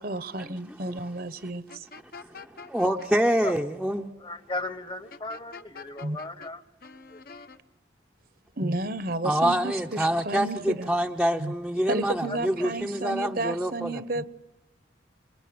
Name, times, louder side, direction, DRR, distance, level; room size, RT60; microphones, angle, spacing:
voice 1, 0.0-1.9 6.0-6.2 8.6-10.9 11.4-11.5 11.9-14.2, right 2 dB, 50° right, 1.1 m, -32 dB
sound 1, 1.7-3.1 5.1-6.5 6.8-7.6, left 4 dB, 50° left, 1.2 m, -45 dB
voice 2, 2.7-4.1 9.2-14.0, equal, ahead, 0.9 m, -26 dB
voice 3, 4.2-6.6 7.1-7.2 12.3-12.8, left 2 dB, 25° left, 1.3 m, -36 dB
28.0 x 22.0 x 9.5 m
head